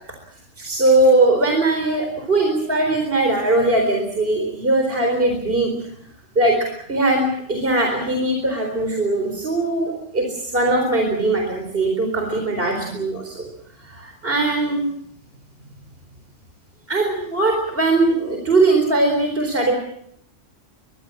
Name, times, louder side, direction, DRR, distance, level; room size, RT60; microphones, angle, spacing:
voice 1, 0.6-5.7 6.4-6.6 6.9-13.4 13.8-14.9 16.9-19.7, right 2 dB, 45° right, 3 dB, 4.4 m, -20 dB
23.5 x 23.0 x 7.3 m, 0.73 s
omnidirectional pair, 1.3 m